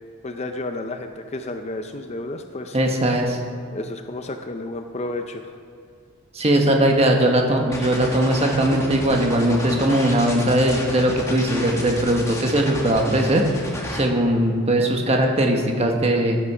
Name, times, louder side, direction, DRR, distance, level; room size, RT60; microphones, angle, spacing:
voice 1, 0.2-2.8 3.7-5.5, left 2 dB, 30° left, 6 dB, 0.5 m, -31 dB
voice 2, 2.7-3.4 6.3-13.4 13.9-16.4, right 1 dB, 30° right, 2 dB, 1.3 m, -19 dB
sound 1, 7.7-14.0, left 1 dB, 15° left, 1.3 m, -31 dB
14.5 x 8.5 x 4.8 m, 2.2 s
head